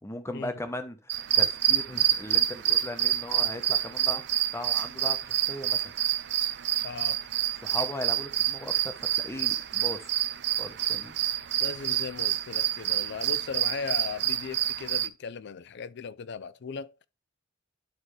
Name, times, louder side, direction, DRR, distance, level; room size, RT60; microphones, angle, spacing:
voice 1, 0.0-4.3 4.5-5.9 7.6-10.1 10.6-11.2, left 1 dB, 15° left, 0.9 m, -38 dB
sound 1, 1.1-15.1, right 12 dB, 60° right, 0.5 m, -28 dB
voice 2, 6.8-7.2 11.6-17.0, left 5 dB, 60° left, 0.5 m, -37 dB
11.0 x 4.4 x 3.2 m
head